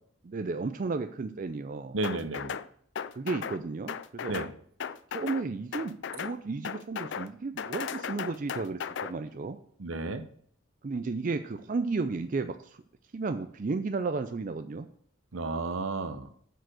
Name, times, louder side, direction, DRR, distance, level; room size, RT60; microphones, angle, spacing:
voice 1, 0.2-2.0 3.2-4.4 5.1-9.6 10.8-12.8 13.1-14.9, right 3 dB, 40° right, 8 dB, 0.4 m, -33 dB
voice 2, 1.9-2.6 4.3-4.5 9.8-10.2 15.3-16.3, right 3 dB, 75° right, 10 dB, 0.8 m, -32 dB
sound 1, 2.0-2.7 3.0-3.6 3.9-4.5 4.8-5.4 5.7-6.4 6.6-7.3 7.6-9.1, left 7 dB, 60° left, 0.4 m, -36 dB
8.0 x 4.9 x 6.3 m, 0.62 s
head